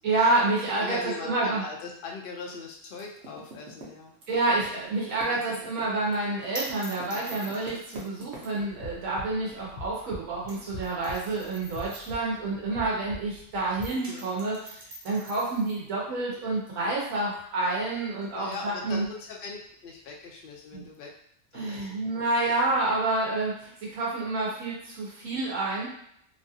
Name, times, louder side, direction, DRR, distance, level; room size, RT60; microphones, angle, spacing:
voice 1, 0.0-1.6 4.3-19.0 20.7-20.8 21.5-25.9, right 2 dB, 90° right, -5 dB, 1.3 m, -28 dB
voice 2, 0.8-4.1 14.1-14.3 18.3-21.1 21.5-21.9, left 4 dB, 60° left, -1 dB, 0.6 m, -40 dB
Typing, 2.9-4.6 4.9-8.9, right 2 dB, 60° right, 1.0 m, -45 dB
sound 1, 4.5-13.4 13.7-20.9, right 2 dB, 30° right, 0.4 m, -46 dB
sound 2, 8.6-13.9, left 2 dB, 90° left, 1.0 m, -43 dB
3.1 x 2.4 x 2.7 m, 0.70 s
omnidirectional pair, 1.3 m